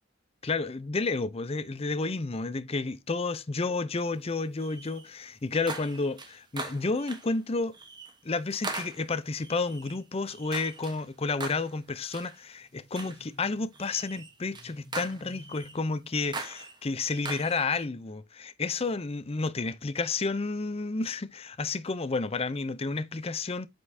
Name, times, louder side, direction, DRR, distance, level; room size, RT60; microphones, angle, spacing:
voice 1, 0.4-7.8 8.2-23.7, left 3 dB, 30° left, 0.6 m, -31 dB
sound 1, 4.6-5.1 5.5-7.4 7.7-8.2 8.5-11.0 11.4-11.8 12.1-12.4 12.9-13.3 13.7-15.8 16.2-17.9, right 3 dB, 25° right, 1.1 m, -41 dB
8.1 x 5.3 x 2.7 m
head